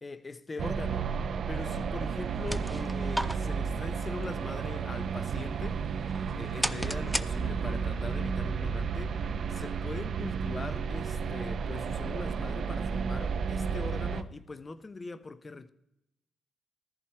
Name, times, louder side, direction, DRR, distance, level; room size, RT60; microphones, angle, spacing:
voice 1, 0.0-1.1 1.5-5.8 6.3-9.2 9.5-15.7, left 3 dB, 25° left, 0.8 m, -41 dB
sound 1, 0.6-14.2, right 6 dB, 60° right, 0.7 m, -32 dB
sound 2, 2.3-7.9, equal, ahead, 0.5 m, -38 dB
14.5 x 13.5 x 4.5 m
cardioid pair, 100°, 0 cm